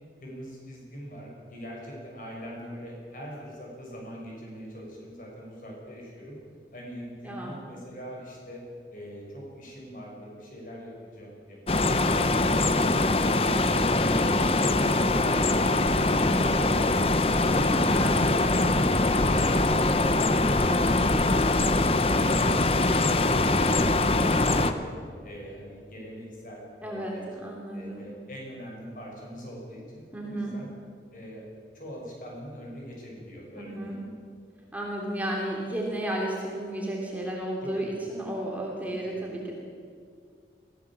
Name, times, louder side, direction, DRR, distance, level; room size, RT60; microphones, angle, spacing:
voice 1, 0.2-6.4 6.7-8.6 8.9-13.5 18.9-20.2 20.5-24.9 25.2-30.7 31.1-31.4 31.7-34.0 34.6-34.7 37.6-38.1 38.8-39.1, equal, 50° left, -2 dB, 6.6 m, -43 dB
voice 2, 7.2-7.6 17.7-18.2 26.8-28.1 30.1-30.6 33.6-34.0 34.7-39.5, right 1 dB, 10° right, -2 dB, 2.9 m, -33 dB
sound 1, 11.7-24.7, left 2 dB, 35° left, 0.9 m, -23 dB
22.5 x 16.0 x 7.5 m, 2.2 s
head